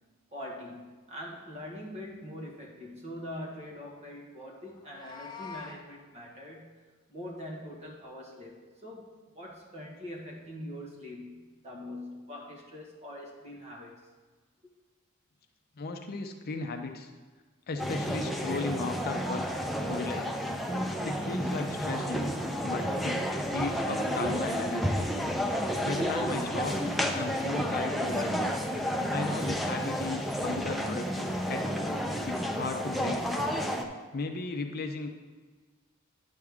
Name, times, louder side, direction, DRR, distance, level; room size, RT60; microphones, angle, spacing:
voice 1, 0.3-14.1, left 1 dB, 30° right, -1 dB, 1.5 m, -43 dB
Meow, 4.7-5.8, left 5 dB, 20° left, 0.9 m, -44 dB
voice 2, 15.8-17.1 17.7-19.5 19.9-20.4 21.0-22.4 22.6-25.0 25.8-26.8 27.1-28.5 29.1-31.7 32.3-33.2 34.1-35.1, left 3 dB, 45° left, 5 dB, 0.6 m, -36 dB
sound 1, 17.8-33.8, equal, ahead, 0.5 m, -31 dB
10.0 x 6.5 x 3.5 m, 1.4 s
head